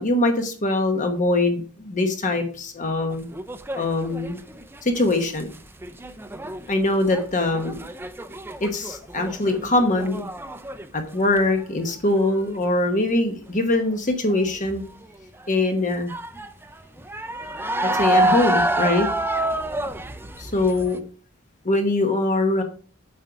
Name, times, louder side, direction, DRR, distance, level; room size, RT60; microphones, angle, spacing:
voice 1, 0.0-3.3 3.7-4.4 4.8-5.5 6.7-7.8 8.6-10.3 10.9-14.8 15.5-16.1 17.4-17.5 17.8-19.1 20.4-21.0 21.6-22.6, left 2 dB, 35° left, 5 dB, 1.1 m, -22 dB
sound 1, 3.1-5.6 5.8-10.9 11.1-11.6 12.1-12.5 14.3-14.6 15.0-15.1 16.1-21.0, right 1 dB, 10° right, 0.5 m, -27 dB
7.7 x 5.4 x 4.6 m, 0.40 s
head